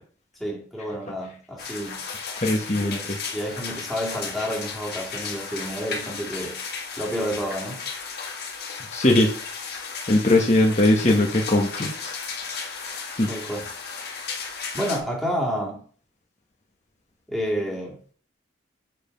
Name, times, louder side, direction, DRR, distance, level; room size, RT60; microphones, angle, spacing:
voice 1, 0.4-2.0 2.8-6.6 7.0-7.8 13.3-13.7 14.7-15.8 17.3-18.1, equal, ahead, 2.0 m, -30 dB
sound 1, 1.6-15.0, left 5 dB, 55° left, 1.8 m, -34 dB
voice 2, 2.4-3.0 8.9-9.3 10.1-12.1 13.2-13.3, left 1 dB, 35° left, 1.2 m, -20 dB
7.7 x 4.9 x 5.1 m
head